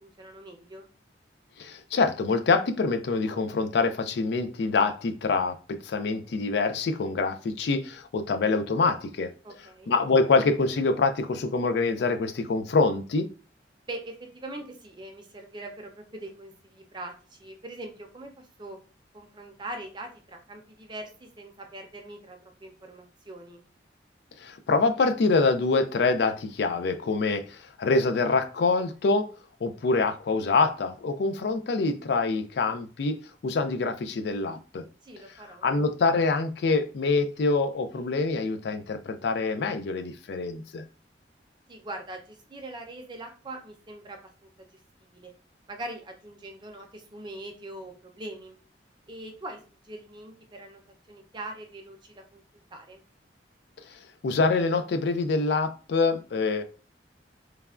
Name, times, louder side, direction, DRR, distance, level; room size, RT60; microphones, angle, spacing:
voice 1, 0.0-0.9 9.4-9.9 13.9-18.8 19.1-23.6 35.0-35.7 41.7-44.8 45.1-45.3 45.7-48.6 49.1-50.8 51.1-52.4 52.7-53.0, right 2 dB, 25° right, 0.5 m, -42 dB
voice 2, 1.6-9.3 9.9-13.3 24.4-29.3 29.6-33.2 33.4-34.8 35.6-40.8 53.9-56.6, left 3 dB, 65° left, 0.4 m, -25 dB
3.2 x 2.1 x 2.4 m
head